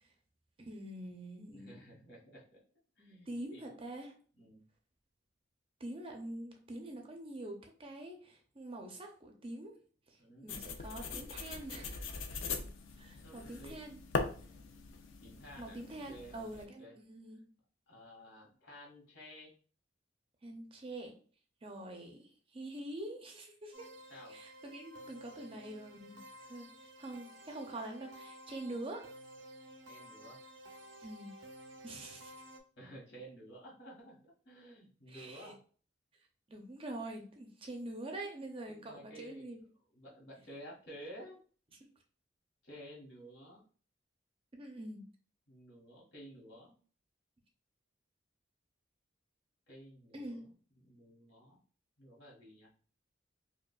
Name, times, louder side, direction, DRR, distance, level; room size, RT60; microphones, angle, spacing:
voice 1, 0.6-1.7 3.3-4.1 5.8-9.7 10.1-10.2 10.4-12.0 13.0-14.0 15.6-17.4 20.4-21.1 21.6-23.9 24.3-26.7 27.0-29.1 31.0-31.3 31.8-32.3 35.1-35.5 36.5-39.6 44.5-45.1 50.1-50.5, right 1 dB, 30° right, 3 dB, 0.5 m, -45 dB
voice 2, 1.4-2.6 3.0-3.8 4.3-4.6 10.2-10.5 13.2-13.8 15.2-17.0 17.9-19.5 24.1-24.4 29.9-30.4 32.8-35.6 38.7-39.4 39.9-41.4 42.6-43.6 45.5-46.7 49.7-51.6 52.0-52.7, equal, 70° left, -4 dB, 1.7 m, -53 dB
sound 1, 10.5-16.7, left 4 dB, 90° left, 0.5 m, -41 dB
sound 2, 23.7-32.6, equal, 75° right, 0.6 m, -53 dB
5.0 x 2.3 x 2.3 m, 0.42 s
head